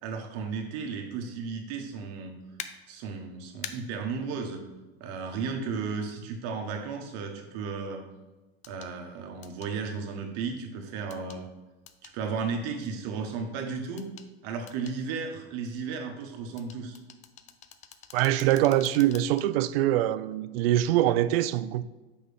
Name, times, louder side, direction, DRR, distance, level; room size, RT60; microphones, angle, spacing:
voice 1, 0.0-2.4 2.9-4.6 5.0-8.0 8.7-11.5 12.0-14.1 14.4-17.0, right 5 dB, 50° right, 1.2 m, -34 dB
sound 1, 2.6-2.7 3.6-3.7 5.7-5.8 8.6-8.9 9.4-9.7 11.1-11.4 11.9-12.2 14.0-14.3 14.7-15.0 16.6-19.5 19.9-20.0, left 9 dB, 25° left, 0.4 m, -44 dB
voice 2, 18.1-21.8, right 13 dB, 65° right, 0.5 m, -24 dB
6.6 x 5.3 x 3.5 m
hypercardioid pair, 120°, 31 cm